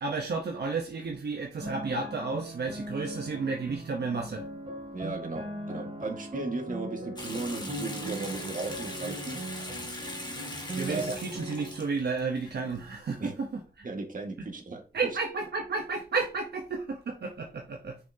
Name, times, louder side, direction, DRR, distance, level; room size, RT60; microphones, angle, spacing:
voice 1, 0.0-4.4 10.8-13.9 14.9-18.0, right 4 dB, 80° right, 1.0 m, -32 dB
sound 1, 1.6-11.9, right 1 dB, 40° right, 2.5 m, -39 dB
voice 2, 4.9-10.3 10.8-11.2 13.2-13.3 13.8-14.8, right 3 dB, 55° right, 1.8 m, -36 dB
Water tap faucet / Sink (filling or washing) / Bathtub (filling or washing), 7.2-12.8, left 1 dB, 25° left, 1.6 m, -40 dB
6.0 x 5.8 x 2.8 m
wide cardioid pair, 85°, 17 cm